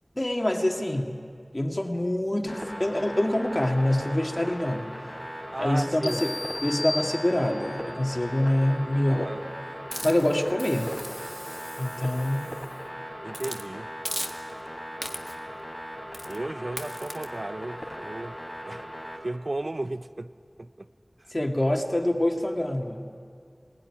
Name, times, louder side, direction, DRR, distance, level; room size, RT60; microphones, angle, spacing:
voice 1, 0.2-1.2 1.5-4.9 5.6-6.4 6.6-9.3 10.0-10.9 11.8-12.5 21.3-23.0, left 1 dB, 40° left, 2.2 m, -25 dB
sound 1, 2.5-19.2, equal, 5° left, 4.3 m, -39 dB
voice 2, 5.5-6.2 9.1-9.4 13.2-13.9 16.3-18.3 18.6-18.8 19.2-20.3 20.6-20.7, right 2 dB, 70° right, 0.6 m, -34 dB
sound 2, 6.0-7.8, left 2 dB, 80° left, 1.3 m, -35 dB
Hiss, 9.9-12.8 13.3-13.6 14.0-14.7 15.0-15.5 16.1-16.4 16.8-17.2, equal, 15° right, 1.6 m, -38 dB
20.5 x 19.5 x 9.9 m
wide cardioid pair, 45°, 0 cm